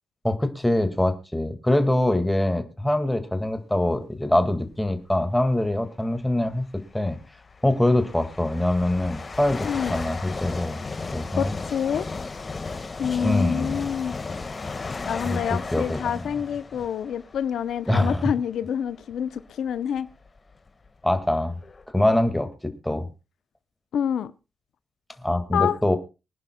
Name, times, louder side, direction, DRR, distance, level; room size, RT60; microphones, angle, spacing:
voice 1, 0.2-6.6 6.9-7.2 7.6-10.8 11.1-11.5 13.2-13.8 15.2-15.4 15.7-16.0 17.9-18.3 21.0-21.6 21.9-23.1 25.2-26.0, left 1 dB, 5° left, 1.8 m, -23 dB
sound 1, 4.7-5.0 6.1-6.2 7.0-18.4 19.0-19.1 20.0-20.1 20.3-21.8, left 4 dB, 30° left, 1.6 m, -35 dB
voice 2, 9.6-10.0 11.3-12.1 13.0-14.1 15.1-20.1 23.9-24.3 25.5-25.8, left 8 dB, 80° left, 0.6 m, -27 dB
24.5 x 10.5 x 2.2 m
cardioid pair, 125°, 0 cm